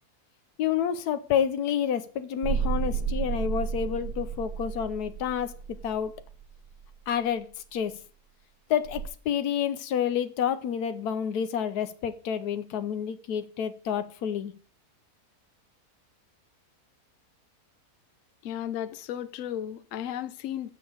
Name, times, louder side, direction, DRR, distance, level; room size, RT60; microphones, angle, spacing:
voice 1, 0.6-5.5 5.8-6.1 7.1-8.0 8.7-14.5, left 8 dB, 85° left, 1.3 m, -29 dB
sound 1, 2.4-6.9 8.8-9.1, right 6 dB, 80° right, 1.3 m, -32 dB
voice 2, 18.4-20.7, left 10 dB, 65° left, 1.0 m, -34 dB
6.4 x 6.3 x 7.2 m
omnidirectional pair, 1.6 m